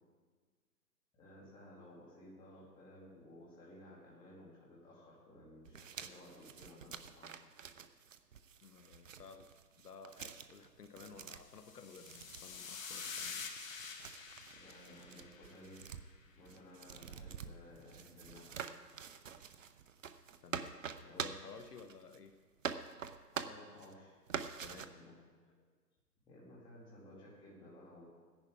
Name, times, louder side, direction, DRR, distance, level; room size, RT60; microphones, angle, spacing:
voice 1, 1.1-7.4 14.5-15.8 16.3-18.7 21.0-21.3 23.3-24.1 24.7-25.2 26.2-28.1, left 1 dB, 10° left, -6 dB, 2.5 m, -56 dB
sound 1, 5.7-22.3 22.6-23.9 24.3-24.9, right 7 dB, 50° right, 0.7 m, -46 dB
voice 2, 8.6-9.5 9.8-13.5 20.4-22.4 24.6-24.9, left 5 dB, 70° left, 8 dB, 1.1 m, -54 dB
sound 2, 11.5-16.0, left 5 dB, 55° left, 1.5 m, -47 dB
15.5 x 10.5 x 4.7 m, 1.5 s
hypercardioid pair, 150°, 49 cm